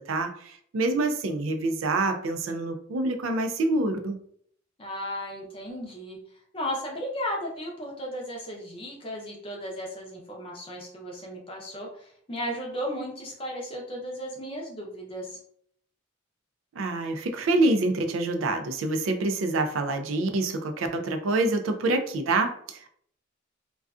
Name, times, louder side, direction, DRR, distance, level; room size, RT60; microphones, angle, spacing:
voice 1, 0.0-4.2 16.8-22.9, right 2 dB, 85° right, 6 dB, 0.4 m, -26 dB
voice 2, 4.8-6.2 6.5-15.4, equal, 25° left, -1 dB, 0.5 m, -35 dB
2.4 x 2.3 x 2.3 m, 0.64 s
head